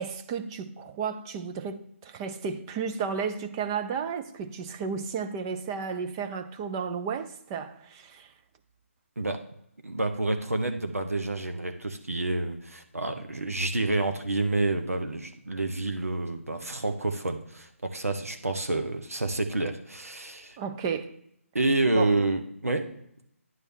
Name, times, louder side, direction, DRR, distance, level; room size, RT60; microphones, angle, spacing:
voice 1, 0.0-8.3 20.6-21.2 21.9-22.1, right 6 dB, 20° right, 0.5 m, -33 dB
voice 2, 9.8-20.6 21.5-22.9, right 2 dB, 85° right, 1.0 m, -28 dB
9.6 x 3.3 x 6.3 m
figure-of-eight pair, 150°, 8 cm